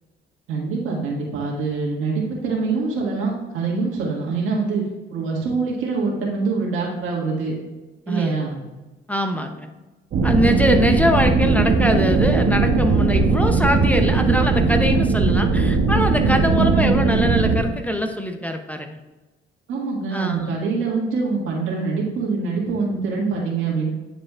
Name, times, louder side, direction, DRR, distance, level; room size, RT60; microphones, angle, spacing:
voice 1, 0.5-4.8 5.1-7.5 8.1-8.6 19.7-23.9, right 4 dB, 90° right, -3 dB, 1.8 m, -24 dB
voice 2, 9.1-9.7 10.2-19.0 20.1-20.5, equal, 5° left, 5 dB, 0.6 m, -22 dB
sound 1, 10.1-17.6, right 4 dB, 55° right, 0.9 m, -18 dB
9.5 x 5.0 x 2.4 m, 1.1 s
cardioid pair, 90°, 20 cm